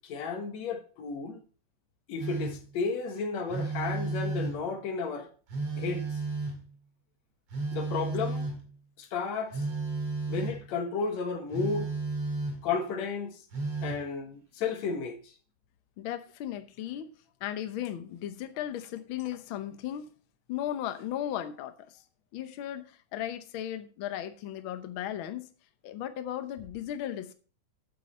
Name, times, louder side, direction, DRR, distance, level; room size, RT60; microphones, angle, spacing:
voice 1, 0.0-1.4 2.1-5.3 5.8-6.2 7.7-8.5 9.0-9.7 10.3-11.9 12.6-13.4 13.8-15.3, left 5 dB, 65° left, 2.5 m, -33 dB
Telephone, 2.2-2.7 3.5-4.7 5.5-6.7 7.5-8.7 9.5-10.6 11.5-12.8 13.5-14.1, right 3 dB, 55° right, 3.3 m, -33 dB
voice 2, 16.0-17.1 17.4-20.1 20.5-22.0 22.3-25.5 25.8-27.3, left 11 dB, 85° left, 1.1 m, -36 dB
9.2 x 8.7 x 4.3 m
omnidirectional pair, 3.6 m